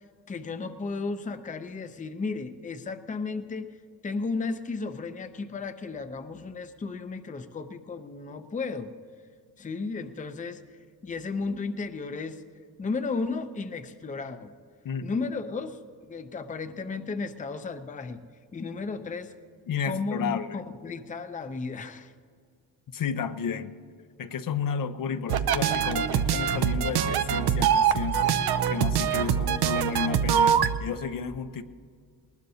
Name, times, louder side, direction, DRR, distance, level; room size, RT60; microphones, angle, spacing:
voice 1, 0.3-3.7 4.0-8.9 9.6-10.6 11.0-12.4 12.8-14.5 15.0-18.2 18.5-19.3 19.8-22.1, left 4 dB, 20° left, 9 dB, 0.6 m, -34 dB
voice 2, 14.8-15.3 19.7-20.6 22.9-23.7 24.2-31.6, left 6 dB, 60° left, 10 dB, 0.7 m, -32 dB
sound 1, 25.3-30.8, right 8 dB, 75° right, 0.7 m, -24 dB
20.0 x 19.5 x 2.8 m, 2.1 s
cardioid pair, 125°, 38 cm